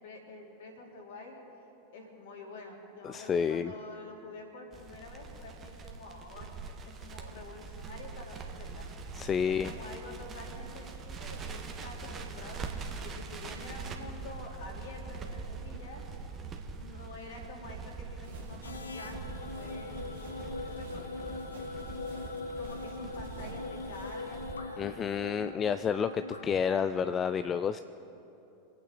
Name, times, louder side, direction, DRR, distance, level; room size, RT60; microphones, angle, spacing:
voice 1, 0.0-1.4 1.9-8.9 9.4-16.1 16.8-24.9, left 2 dB, 60° left, 0 dB, 2.9 m, -48 dB
voice 2, 3.0-3.7 9.2-9.7 24.8-27.8, left 7 dB, 25° left, 11 dB, 0.4 m, -30 dB
Crackle, 4.7-24.5, right 4 dB, 25° right, 1.4 m, -43 dB
sound 1, 18.2-24.2, right 3 dB, 75° right, 2.1 m, -49 dB
sound 2, 18.6-27.0, left 3 dB, 75° left, 1.0 m, -41 dB
24.5 x 9.0 x 4.1 m, 2.9 s
figure-of-eight pair, 90°, 0 cm